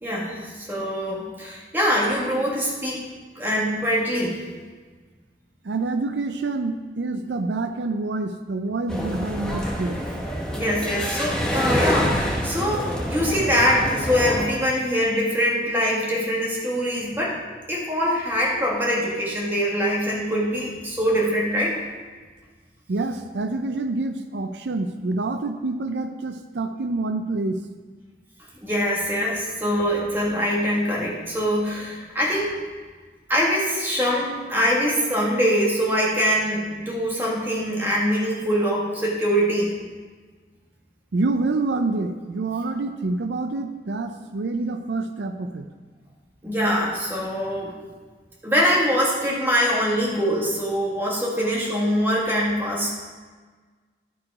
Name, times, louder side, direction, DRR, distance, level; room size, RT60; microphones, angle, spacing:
voice 1, 0.0-3.0 3.4-4.4 10.5-17.4 17.7-21.8 28.6-32.5 33.3-39.7 46.4-47.8 48.4-52.9, equal, 10° right, -4 dB, 1.8 m, -23 dB
voice 2, 5.6-10.0 22.9-27.6 41.1-45.7, right 3 dB, 85° right, 8 dB, 0.5 m, -27 dB
sound 1, 8.9-14.5, equal, 5° left, 0.9 m, -26 dB
12.0 x 4.9 x 4.8 m, 1.4 s
head